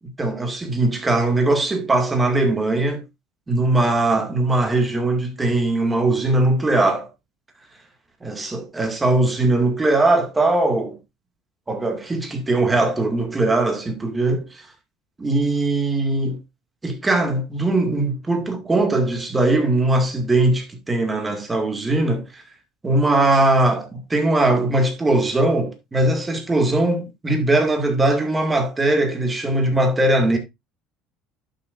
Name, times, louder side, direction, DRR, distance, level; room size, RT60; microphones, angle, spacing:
voice 1, 0.2-3.0 3.5-7.1 8.2-11.0 11.7-14.5 15.2-16.4 16.8-22.4 22.8-30.4, right 2 dB, 15° right, 2.1 m, -20 dB
11.0 x 6.6 x 2.5 m
cardioid pair, 120°, 0 cm